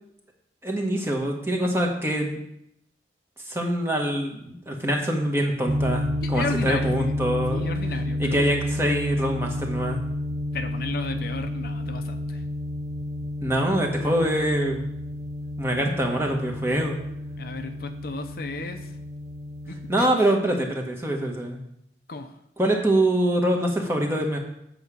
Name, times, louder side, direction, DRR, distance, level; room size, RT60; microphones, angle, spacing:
voice 1, 0.6-2.4 3.4-7.6 8.2-10.0 13.4-14.9 15.6-17.0 19.9-21.6 22.6-24.4, right 1 dB, 15° right, 1 dB, 1.2 m, -24 dB
sound 1, 5.6-20.1, left 1 dB, 35° right, 0.6 m, -30 dB
voice 2, 6.3-7.1 7.5-8.4 10.5-12.4 17.4-19.0 19.7-20.1 22.1-22.3, left 3 dB, 55° left, 6 dB, 0.6 m, -34 dB
8.0 x 4.9 x 6.8 m, 0.77 s
head